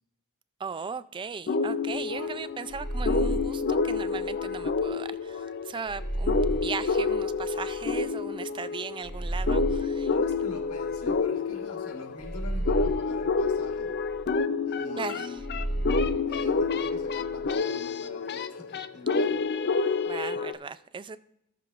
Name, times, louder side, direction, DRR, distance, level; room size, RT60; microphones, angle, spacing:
voice 1, 0.6-10.1 15.0-15.4 20.1-21.2, right 5 dB, 20° right, 0.3 m, -37 dB
sound 1, 1.5-20.5, left 4 dB, 50° left, 0.5 m, -29 dB
sound 2, 2.7-4.9 5.9-8.0 9.0-11.4 12.2-14.4 15.4-17.5, right 1 dB, ahead, 1.9 m, -34 dB
voice 2, 10.1-14.0 14.6-19.5, left 2 dB, 70° left, 1.8 m, -45 dB
17.0 x 6.7 x 2.5 m
head